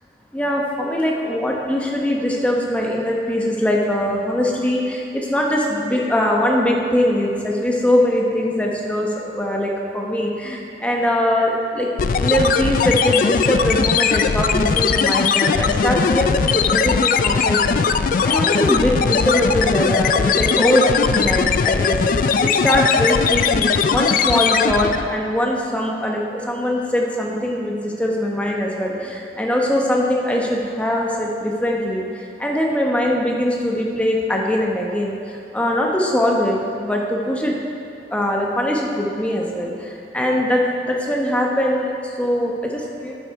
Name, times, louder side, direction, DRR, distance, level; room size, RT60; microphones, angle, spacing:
voice 1, 0.3-11.9 12.1-37.6 38.1-43.1, left 1 dB, 5° left, -2 dB, 1.0 m, -21 dB
sound 1, 12.0-25.1, left 6 dB, 50° left, 0.3 m, -19 dB
9.6 x 8.4 x 4.6 m, 2.6 s
head